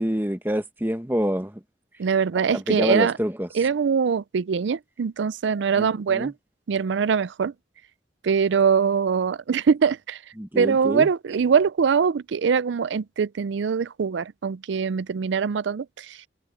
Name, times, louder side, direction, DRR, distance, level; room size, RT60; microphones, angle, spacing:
voice 1, 0.0-1.6 2.5-3.5 5.8-6.3 10.4-11.1, equal, 10° right, 1.1 m, -26 dB
voice 2, 2.0-3.1 3.5-6.3 6.7-7.5 8.2-10.2 10.6-16.2, right 6 dB, 75° right, 0.4 m, -23 dB
head